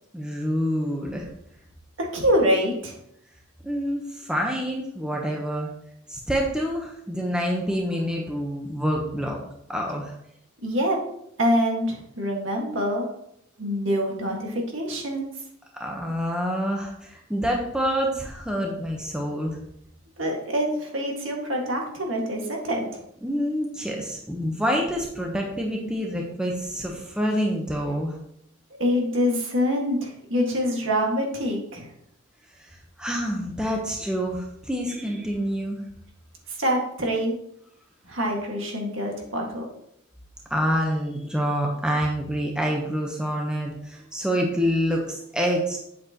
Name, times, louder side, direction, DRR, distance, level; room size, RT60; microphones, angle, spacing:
voice 1, 0.1-1.3 3.6-5.7 6.1-9.4 9.7-10.1 15.8-19.6 23.2-28.2 32.6-35.8 40.5-45.8, equal, 5° right, 0 dB, 1.0 m, -27 dB
voice 2, 2.0-3.0 10.6-11.0 11.4-13.1 13.6-15.3 20.2-23.0 28.8-31.9 36.6-37.3 38.1-39.7, equal, 60° right, 0 dB, 2.0 m, -25 dB
8.6 x 7.8 x 3.0 m, 0.74 s
head